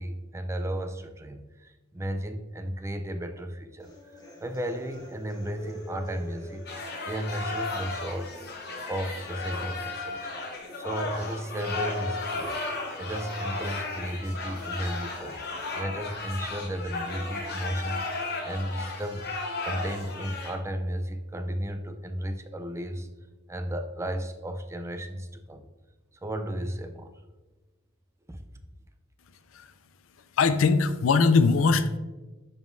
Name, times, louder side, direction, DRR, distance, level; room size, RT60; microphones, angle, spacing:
voice 1, 0.0-3.9 4.4-8.4 8.9-12.6 13.0-15.4 15.7-19.3 19.6-23.1 23.5-25.7 26.2-27.1 28.3-28.4, equal, 15° right, 8 dB, 0.4 m, -34 dB
sound 1, 3.8-15.8, equal, 20° left, 1.3 m, -47 dB
sound 2, 6.7-20.6, left 3 dB, 55° left, 1.0 m, -35 dB
voice 2, 30.4-32.0, left 4 dB, 70° left, 12 dB, 0.4 m, -21 dB
10.5 x 3.7 x 2.6 m, 1.2 s
head